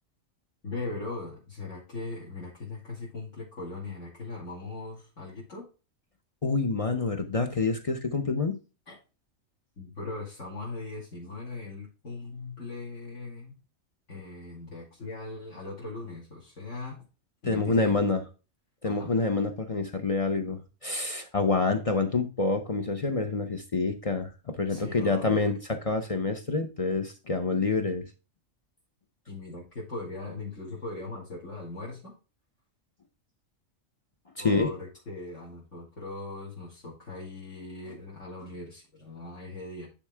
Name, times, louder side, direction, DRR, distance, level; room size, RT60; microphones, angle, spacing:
voice 1, 0.6-5.7 8.9-9.0 9.8-13.6 14.1-17.0 17.4-17.9 18.8-19.1 24.7-25.5 29.3-32.1 34.4-39.9, left 3 dB, 60° left, -5 dB, 2.4 m, -39 dB
voice 2, 6.4-8.6 17.5-18.2 18.8-25.6 25.8-28.0 34.4-34.7, left 3 dB, 35° left, 5 dB, 0.6 m, -27 dB
10.0 x 3.5 x 3.4 m, 0.32 s
omnidirectional pair, 1.4 m